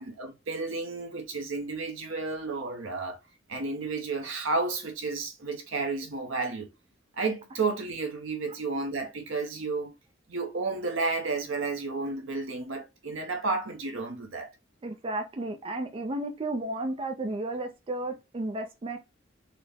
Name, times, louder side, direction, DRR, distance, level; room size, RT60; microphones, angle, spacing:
voice 1, 0.0-3.2 3.5-6.7 7.2-9.9 10.3-14.5, right 3 dB, 80° right, 0.8 m, -32 dB
voice 2, 14.8-19.0, right 2 dB, 30° right, 0.4 m, -33 dB
4.0 x 2.1 x 3.3 m
head